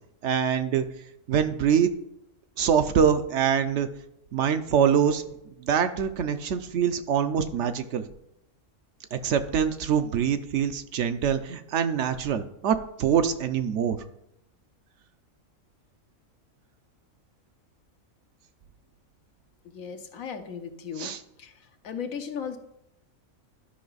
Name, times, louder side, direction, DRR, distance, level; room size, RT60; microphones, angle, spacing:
voice 1, 0.2-0.8 1.3-1.9 2.6-3.9 4.3-5.2 5.6-8.0 9.1-14.0 21.0-21.2, right 8 dB, 65° right, 10 dB, 0.9 m, -24 dB
voice 2, 19.6-21.1 21.4-22.6, left 7 dB, 85° left, 7 dB, 1.3 m, -36 dB
11.5 x 5.4 x 4.0 m, 0.77 s
omnidirectional pair, 1.4 m